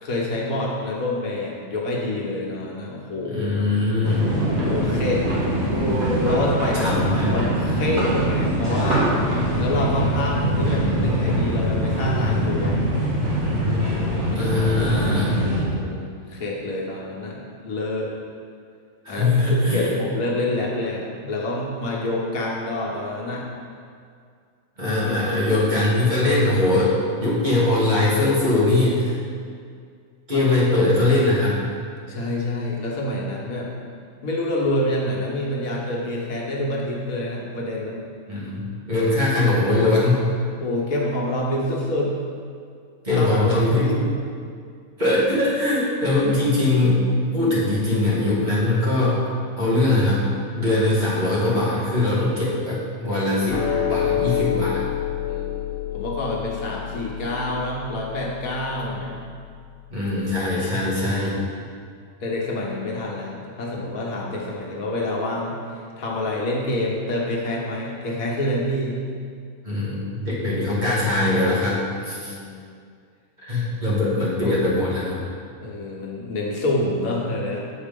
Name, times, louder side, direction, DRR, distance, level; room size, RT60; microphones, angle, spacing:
voice 1, 0.0-3.5 4.5-5.3 5.6-6.0 6.3-9.1 9.6-13.0 15.6-18.1 19.1-23.5 32.1-33.7 34.2-38.0 40.5-42.2 43.2-43.3 43.6-44.2 55.3-59.1 62.2-69.0 72.1-72.6 75.6-77.7, left 1 dB, 80° left, -3 dB, 1.6 m, -27 dB
voice 2, 3.2-4.3 6.7-7.3 14.3-15.4 19.0-19.9 24.8-26.9 27.2-29.2 30.3-31.6 38.3-40.3 43.0-44.0 45.0-49.2 49.6-50.3 50.6-53.6 53.9-54.9 58.9-59.0 59.9-61.4 69.6-72.3 73.4-75.2, left 2 dB, 35° right, -8 dB, 2.0 m, -21 dB
sound 1, 4.0-15.6, equal, 85° right, 2.2 m, -23 dB
sound 2, 53.5-60.0, left 10 dB, 65° left, 1.2 m, -28 dB
8.0 x 4.5 x 5.3 m, 2.2 s
omnidirectional pair, 1.4 m